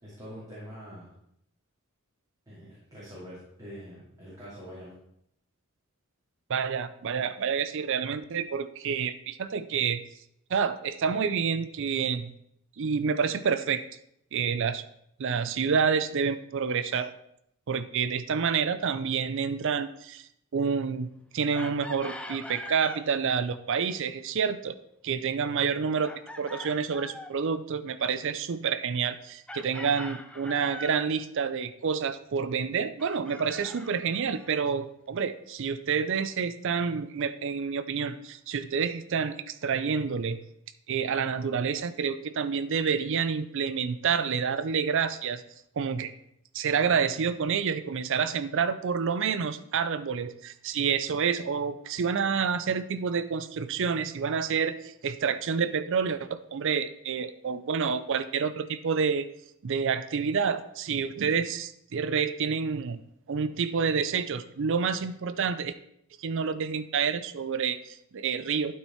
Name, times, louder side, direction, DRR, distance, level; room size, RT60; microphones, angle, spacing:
voice 1, 0.0-1.1 2.5-4.9, equal, 15° right, -9 dB, 2.7 m, -44 dB
voice 2, 6.5-10.0 10.5-12.3 12.8-13.8 14.3-14.8 15.2-17.1 17.7-20.3 20.5-24.8 25.0-40.4 40.9-45.4 45.8-46.1 46.5-59.3 59.6-63.0 63.3-65.7 66.2-68.7, right 6 dB, 60° right, 13 dB, 0.5 m, -28 dB
Chicken rooster, 21.5-23.1 26.0-27.4 29.5-31.1 33.0-34.6, left 1 dB, 5° left, 0.5 m, -42 dB
12.0 x 4.5 x 4.4 m, 0.75 s
head